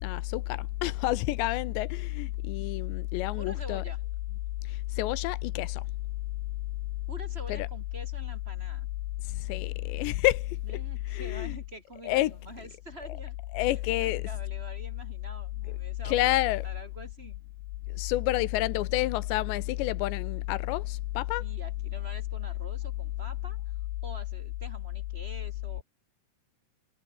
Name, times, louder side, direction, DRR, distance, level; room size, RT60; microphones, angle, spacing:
voice 1, 0.0-3.8 4.7-5.8 7.5-7.7 9.2-10.8 11.1-11.6 12.0-12.3 13.5-14.2 16.0-16.6 18.0-21.4, left 17 dB, 85° left, 3.3 m, -29 dB
voice 2, 3.4-4.0 7.1-8.9 10.6-13.4 13.7-13.8 14.0-17.4 21.4-23.7 24.0-25.8, right 1 dB, 15° right, 3.6 m, -46 dB
omnidirectional pair, 5.0 m